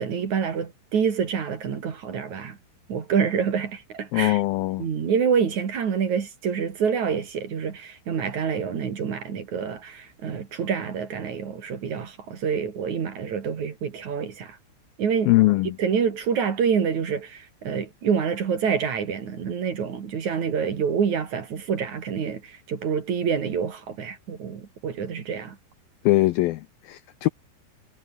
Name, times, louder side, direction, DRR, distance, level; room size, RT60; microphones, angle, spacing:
voice 1, 0.0-2.6 2.9-4.4 4.8-14.6 15.0-15.3 15.8-25.6, right 6 dB, 50° right, 3.5 m, -27 dB
voice 2, 4.1-4.9 15.3-15.8 26.0-27.3, left 18 dB, 85° left, 2.1 m, -21 dB
omnidirectional pair, 5.0 m